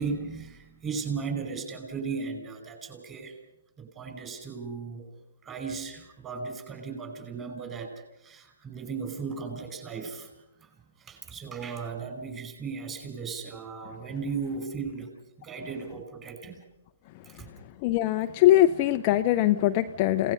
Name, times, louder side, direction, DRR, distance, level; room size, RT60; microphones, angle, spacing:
voice 1, 0.0-3.4 3.8-5.1 5.4-16.6 17.2-17.5, right 5 dB, 15° right, 5 dB, 5.0 m, -36 dB
voice 2, 17.8-20.3, left 13 dB, 30° left, 8 dB, 0.7 m, -22 dB
29.5 x 18.0 x 5.5 m, 0.92 s
hypercardioid pair, 145°, 0 cm